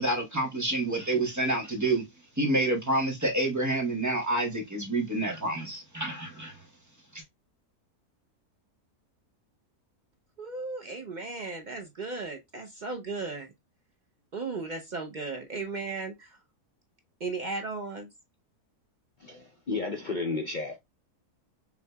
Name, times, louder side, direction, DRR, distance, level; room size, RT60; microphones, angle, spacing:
voice 1, 0.0-2.0 2.4-6.6 7.1-7.2, right 2 dB, 15° right, 0.9 m, -28 dB
voice 2, 10.4-13.5 14.3-16.4 17.2-18.1, right 3 dB, 70° right, 0.4 m, -36 dB
voice 3, 19.2-20.8, left 3 dB, 60° left, 0.4 m, -32 dB
5.9 x 2.8 x 2.2 m
omnidirectional pair, 1.6 m